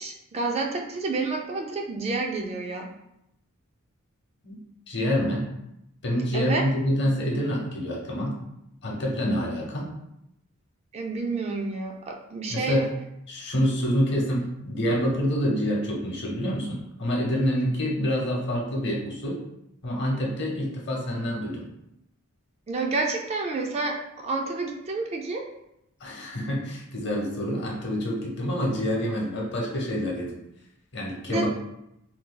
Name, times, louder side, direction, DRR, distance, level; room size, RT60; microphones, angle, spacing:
voice 1, 0.0-2.9 6.3-6.6 10.9-12.8 22.7-25.4 31.3-31.5, right 3 dB, 30° right, 1 dB, 0.3 m, -29 dB
voice 2, 4.9-5.5 6.0-8.4 8.8-9.9 12.5-12.9 13.3-19.4 19.8-21.7 26.0-30.4 30.9-31.5, equal, 55° left, -1 dB, 0.8 m, -27 dB
2.7 x 2.3 x 3.7 m, 0.82 s
head